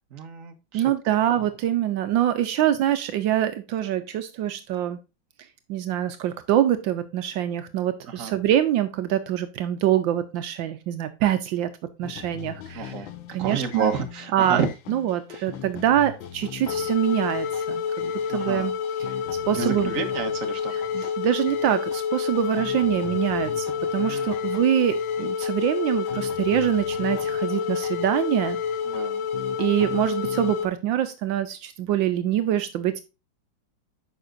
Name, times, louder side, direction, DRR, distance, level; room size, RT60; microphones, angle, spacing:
voice 1, 0.1-0.9 1.3-1.4 8.1-8.3 12.7-13.1 13.4-14.7 15.3-15.5 18.3-18.7 19.5-21.1 24.0-24.5 28.8-29.3, right 6 dB, 45° right, 6 dB, 1.5 m, -31 dB
voice 2, 0.7-5.0 5.7-11.7 12.0-12.9 13.3-13.9 14.3-14.6 14.9-18.8 19.5-19.9 20.9-28.6 29.6-33.0, right 11 dB, 80° right, 10 dB, 1.4 m, -24 dB
sound 1, 12.0-30.7, left 7 dB, 80° left, 1.6 m, -29 dB
9.3 x 5.8 x 2.5 m, 0.28 s
omnidirectional pair, 2.1 m